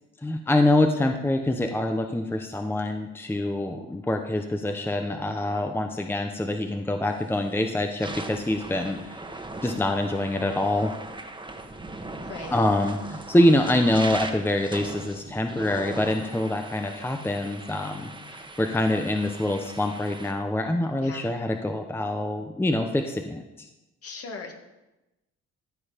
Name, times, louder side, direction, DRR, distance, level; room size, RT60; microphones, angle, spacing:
voice 1, 0.2-9.1 9.6-10.9 12.5-23.7, left 1 dB, 5° left, 5 dB, 0.8 m, -25 dB
sound 1, 7.1-7.4 7.8-20.3, right 2 dB, 15° right, 1.4 m, -39 dB
voice 2, 12.2-12.6 21.0-21.3 24.0-24.5, left 4 dB, 50° left, 3 dB, 2.1 m, -39 dB
14.0 x 7.0 x 5.1 m, 0.99 s
cardioid pair, 90°, 30 cm